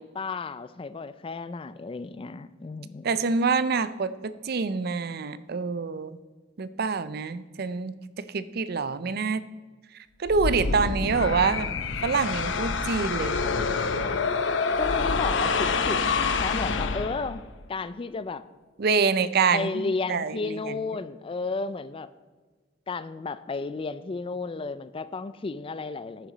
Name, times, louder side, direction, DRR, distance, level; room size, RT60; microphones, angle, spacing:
voice 1, 0.0-3.1 14.8-17.4 17.7-18.4 19.5-22.1 22.9-26.3, left 4 dB, 30° left, 15 dB, 0.4 m, -33 dB
voice 2, 3.0-6.2 6.6-9.4 10.2-11.7 12.0-13.4 18.8-19.8 20.1-20.8, right 5 dB, 55° right, 15 dB, 0.5 m, -26 dB
sound 1, 10.3-17.5, left 4 dB, 75° left, 0.7 m, -27 dB
10.5 x 9.2 x 4.0 m, 1.4 s
head